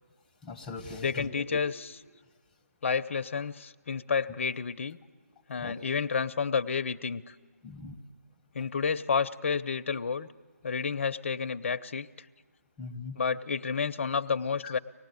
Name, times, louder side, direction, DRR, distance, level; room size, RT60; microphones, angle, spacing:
voice 1, 0.4-1.6 5.6-5.7 7.6-8.0 12.8-13.2 14.6-14.8, left 3 dB, 5° left, 4 dB, 1.3 m, -41 dB
voice 2, 1.0-2.0 2.8-5.0 5.5-7.3 8.5-10.3 10.6-12.1 13.2-14.8, left 5 dB, 50° left, 10 dB, 0.7 m, -30 dB
24.0 x 19.0 x 9.6 m, 1.5 s
figure-of-eight pair, 160°, 9 cm